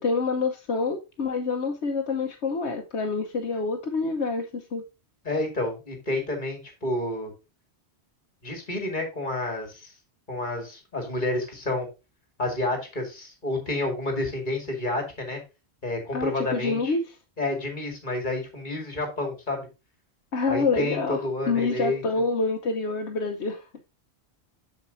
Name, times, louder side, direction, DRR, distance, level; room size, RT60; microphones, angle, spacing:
voice 1, 0.0-4.9 16.1-17.2 20.3-23.8, left 4 dB, 85° left, 1.2 m, -27 dB
voice 2, 5.2-7.3 8.4-9.9 10.3-11.9 12.4-15.4 15.8-16.9 17.4-19.6 20.5-22.0, left 2 dB, 45° left, 2.3 m, -29 dB
7.3 x 7.2 x 2.6 m
omnidirectional pair, 1.1 m